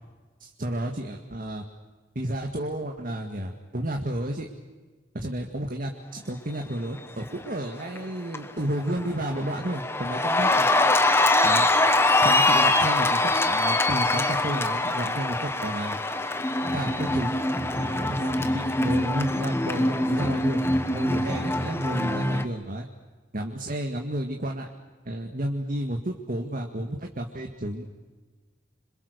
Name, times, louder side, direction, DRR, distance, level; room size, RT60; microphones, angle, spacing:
voice 1, 0.4-1.7 2.2-4.5 5.1-10.7 11.4-11.7 12.2-16.0 16.7-17.4 17.7-20.6 20.9-22.9 23.3-24.7 25.1-27.9, right 1 dB, 45° right, 2 dB, 2.0 m, -31 dB
Cheering, 7.6-8.0 8.3-22.4, left 2 dB, 15° left, 1.3 m, -24 dB
27.0 x 26.5 x 6.8 m, 1.3 s
head